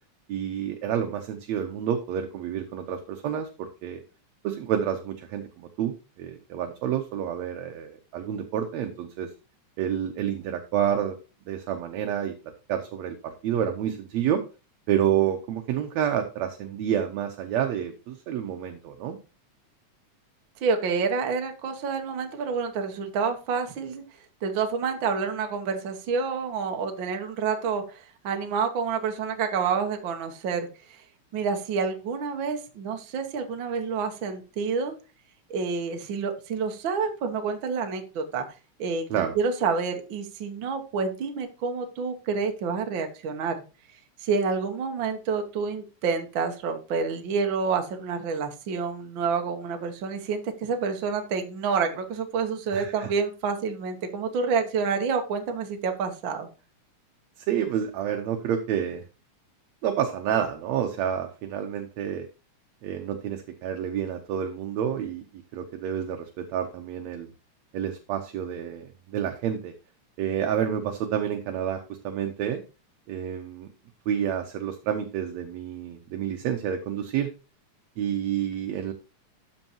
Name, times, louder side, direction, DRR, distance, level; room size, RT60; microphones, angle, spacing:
voice 1, 0.3-4.0 4.4-5.4 5.8-9.3 9.8-11.2 11.5-12.3 12.7-14.4 14.9-19.2 39.1-39.4 52.7-53.1 57.4-59.0 59.8-62.3 62.8-65.2 65.5-67.3 67.7-69.7 70.2-72.6 73.1-73.7 74.1-77.3 78.0-78.9, right 9 dB, 70° right, 5 dB, 2.0 m, -29 dB
voice 2, 20.6-24.0 24.4-31.0 31.3-34.9 35.5-38.5 38.8-39.1 39.3-43.6 44.2-56.5, right 5 dB, 55° right, 5 dB, 1.5 m, -28 dB
13.0 x 5.4 x 2.9 m, 0.32 s
omnidirectional pair, 3.4 m